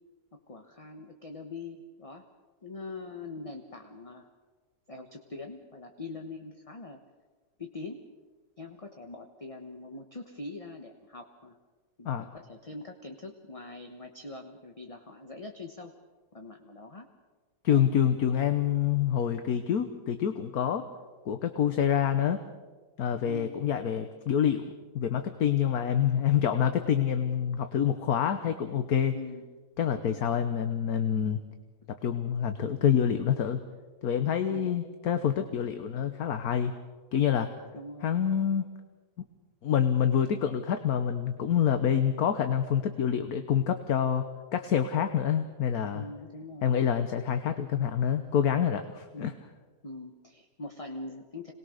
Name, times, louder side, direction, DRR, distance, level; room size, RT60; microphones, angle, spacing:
voice 1, 0.5-2.2 2.6-4.3 4.9-7.0 7.6-8.1 8.6-11.6 12.0-15.9 16.3-17.1 17.7-17.9 23.2-23.6 29.1-29.5 30.1-30.4 34.4-34.7 37.7-38.1 45.9-46.7 49.1-49.4 49.8-51.5, left 2 dB, 25° left, 4 dB, 1.0 m, -43 dB
voice 2, 17.6-20.9 21.2-22.4 23.0-29.2 29.8-31.4 31.9-33.6 34.0-36.7 37.1-37.5 38.0-38.7 39.2-39.3 39.6-44.3 44.5-46.0 46.6-49.3, left 8 dB, 60° left, 9 dB, 1.4 m, -27 dB
26.5 x 20.0 x 6.5 m, 1.3 s
omnidirectional pair, 1.9 m